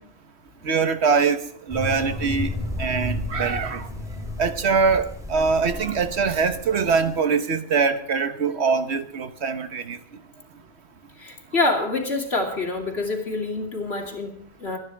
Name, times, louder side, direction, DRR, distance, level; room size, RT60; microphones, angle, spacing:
voice 1, 0.6-1.4 1.7-2.5 2.8-3.9 4.4-10.0, right 5 dB, 85° right, 9 dB, 1.4 m, -23 dB
sound 1, 1.7-7.2, left 1 dB, 5° right, 3.2 m, -33 dB
voice 2, 11.2-14.8, left 3 dB, 75° left, 1 dB, 3.1 m, -26 dB
25.0 x 10.5 x 3.5 m, 0.65 s
omnidirectional pair, 1.1 m